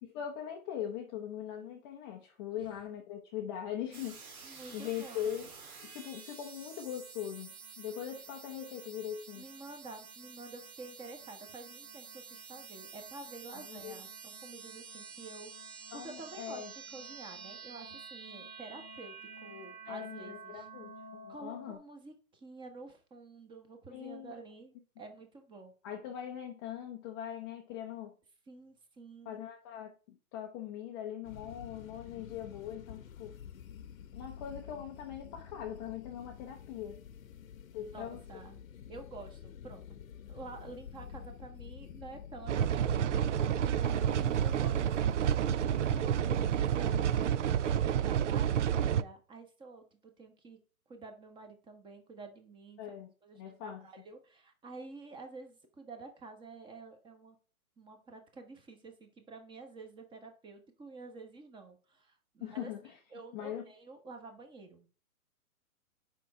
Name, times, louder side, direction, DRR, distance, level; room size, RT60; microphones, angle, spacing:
voice 1, 0.1-5.5 5.8-9.4 13.6-14.0 15.9-16.7 19.8-20.9 21.2-21.8 23.9-24.4 25.8-28.1 29.3-33.4 34.1-37.0 37.7-38.2 52.8-53.1 53.3-53.8 62.4-63.0 63.3-63.7, left 10 dB, 15° left, 0.5 m, -41 dB
sound 1, 3.9-21.8, right 5 dB, 75° right, 2.1 m, -49 dB
voice 2, 4.4-5.3 9.3-16.7 16.9-19.2 19.4-20.7 21.3-25.7 28.5-29.4 37.9-38.6 38.9-40.0 40.3-50.6 50.9-52.8 53.2-57.4 57.8-62.7 63.1-64.9, right 3 dB, 10° right, 1.1 m, -50 dB
sound 2, 31.2-47.4, left 8 dB, 65° left, 0.9 m, -49 dB
sound 3, 42.5-49.0, right 9 dB, 55° right, 0.5 m, -29 dB
7.3 x 5.4 x 4.8 m
hypercardioid pair, 135°, 44 cm